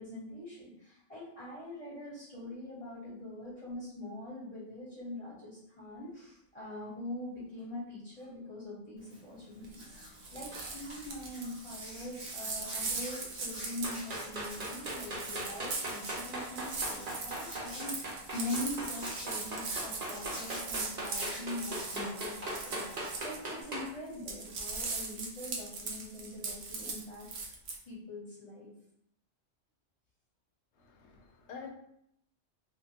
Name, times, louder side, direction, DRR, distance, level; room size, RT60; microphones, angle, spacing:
voice 1, 0.0-27.3 27.9-28.7, left 1 dB, 30° left, -9 dB, 1.0 m, -43 dB
Hands, 9.0-23.6, right 1 dB, 80° right, 1.6 m, -47 dB
sound 1, 9.6-9.9 10.2-23.9 24.1-27.8, right 4 dB, 65° right, 0.8 m, -40 dB
sound 2, 10.5-10.7 13.8-23.9, right 1 dB, 40° right, 0.8 m, -39 dB
voice 2, 30.8-31.7, left 5 dB, 70° left, 3 dB, 0.8 m, -47 dB
3.2 x 2.1 x 2.8 m, 0.72 s
omnidirectional pair, 1.2 m